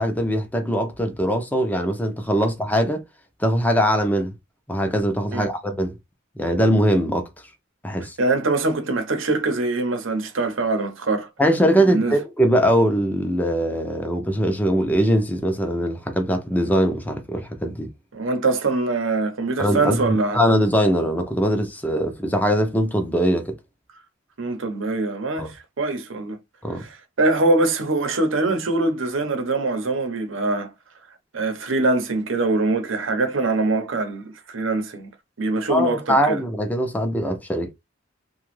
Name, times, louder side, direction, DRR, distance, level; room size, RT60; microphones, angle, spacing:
voice 1, 0.0-3.0 3.4-4.3 4.7-5.9 6.4-7.3 7.8-8.2 11.4-17.9 19.6-23.6 25.4-25.5 26.6-26.8 35.7-37.7, equal, 10° left, 0.6 m, -21 dB
voice 2, 8.2-11.3 11.9-12.2 18.1-20.4 24.4-26.4 26.8-30.7 31.3-35.1 35.4-36.4, right 2 dB, 80° right, 0.8 m, -23 dB
3.0 x 2.3 x 3.1 m
head